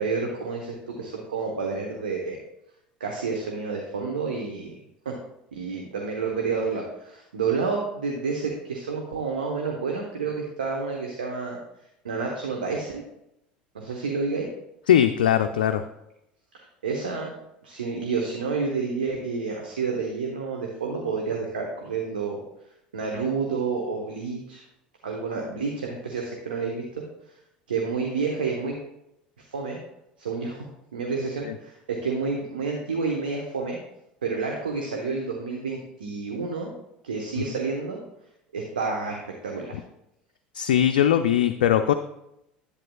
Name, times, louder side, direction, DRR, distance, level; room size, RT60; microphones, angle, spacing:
voice 1, 0.0-2.4 3.0-4.7 5.0-5.1 5.5-11.6 12.0-13.0 13.7-14.5 16.8-17.3 17.6-22.4 22.9-24.6 25.0-26.8 27.7-28.8 29.5-29.8 30.2-30.7 30.9-33.8 34.2-36.7 37.0-38.0 38.5-39.2 39.4-39.8, right 4 dB, 80° right, 0 dB, 1.1 m, -29 dB
voice 2, 14.9-15.8 31.5-31.6 37.4-37.5 40.5-41.9, left 10 dB, 75° left, 8 dB, 0.3 m, -20 dB
10.5 x 8.4 x 2.3 m, 0.83 s
figure-of-eight pair, 70°, 5 cm